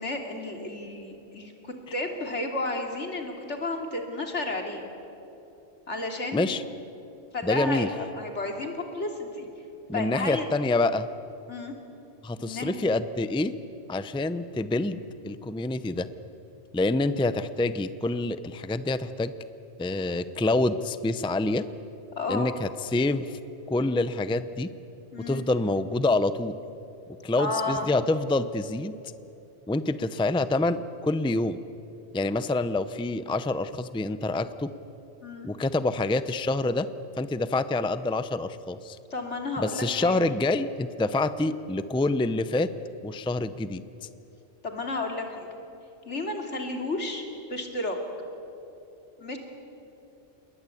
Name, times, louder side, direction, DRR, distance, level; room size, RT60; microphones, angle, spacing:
voice 1, 0.0-1.5 1.9-4.8 5.9-6.5 7.3-9.5 9.9-10.5 11.5-11.8 12.4-12.8 22.1-22.5 25.1-25.5 27.4-27.9 35.2-35.5 39.1-40.2 44.6-45.5 46.1-48.0 49.2-49.4, left 2 dB, 75° left, 3 dB, 3.3 m, -32 dB
voice 2, 6.3-6.6 7.4-7.9 9.9-11.1 12.2-13.5 13.9-16.1 16.7-19.3 19.8-21.6 22.3-23.2 23.7-24.7 25.3-26.6 27.2-28.9 29.7-31.6 32.1-34.7 35.4-36.9 37.2-39.0 39.6-42.7 43.0-43.8, left 2 dB, 5° left, 12 dB, 0.5 m, -26 dB
29.0 x 21.5 x 8.5 m, 2.9 s
omnidirectional pair, 1.2 m